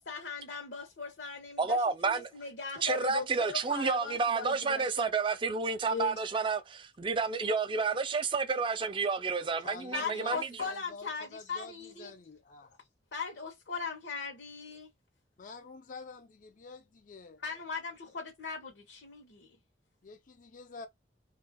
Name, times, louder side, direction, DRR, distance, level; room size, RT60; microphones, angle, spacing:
voice 1, 0.1-5.1 5.9-6.2 9.9-12.1 13.1-14.9 17.4-19.6, left 5 dB, 65° left, 0.8 m, -39 dB
voice 2, 1.6-2.3 2.8-10.6, right 4 dB, 25° right, 0.4 m, -30 dB
voice 3, 9.4-12.7 15.4-17.4 20.0-20.9, left 4 dB, 45° left, 0.4 m, -48 dB
2.9 x 2.3 x 3.9 m
head